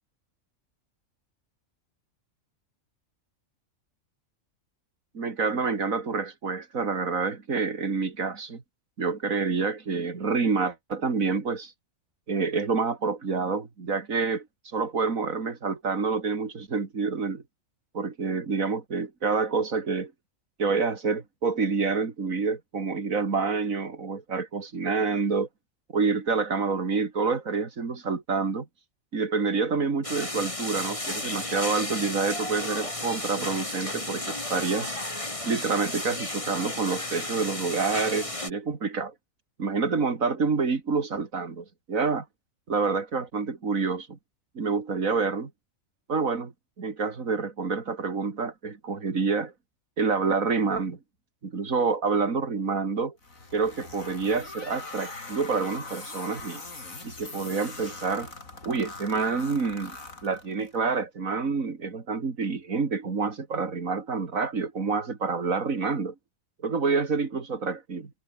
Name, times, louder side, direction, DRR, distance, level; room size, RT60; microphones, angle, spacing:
voice 1, 5.1-8.6 9.0-11.7 12.3-14.5 14.7-17.4 17.9-20.1 20.6-25.5 25.9-28.7 29.1-35.0 35.4-39.1 39.6-42.2 42.7-44.2 44.5-45.5 46.1-46.5 46.8-49.5 50.0-51.0 51.4-53.1 53.5-56.6 57.0-58.3 58.6-60.0 60.2-66.1 66.6-68.1, right 4 dB, 80° right, 2.8 m, -28 dB
sound 1, 30.0-38.5, left 1 dB, 25° left, 3.4 m, -33 dB
sound 2, 53.2-60.8, left 3 dB, 90° left, 4.5 m, -41 dB
omnidirectional pair, 1.4 m